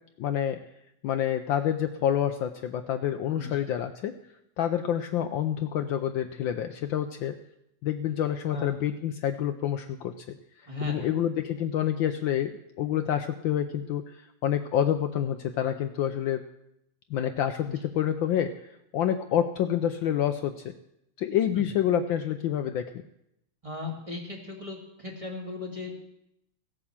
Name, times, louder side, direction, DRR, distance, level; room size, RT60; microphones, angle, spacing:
voice 1, 0.2-0.6 1.0-4.2 4.6-7.4 7.8-16.5 17.1-20.7 21.2-23.0, left 10 dB, 70° left, 8 dB, 1.3 m, -28 dB
voice 2, 10.7-11.1 17.6-17.7 21.5-21.7 23.6-26.1, left 2 dB, 15° right, -1 dB, 2.4 m, -37 dB
16.0 x 8.5 x 7.3 m, 0.80 s
omnidirectional pair, 2.4 m